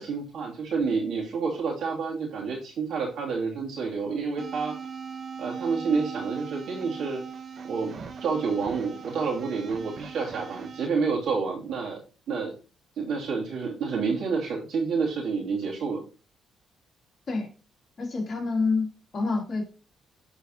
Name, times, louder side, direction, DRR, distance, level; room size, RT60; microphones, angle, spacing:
voice 1, 0.0-4.8 5.4-7.2 7.6-7.9 8.2-12.0 12.3-12.5 13.0-16.0, right 5 dB, 75° right, -3 dB, 2.5 m, -29 dB
sound 1, 4.4-10.9, right 6 dB, 50° right, 0.8 m, -39 dB
voice 2, 18.0-19.7, left 3 dB, 45° left, 0 dB, 2.6 m, -27 dB
11.5 x 4.0 x 2.8 m, 0.34 s
cardioid pair, 90°, 0 cm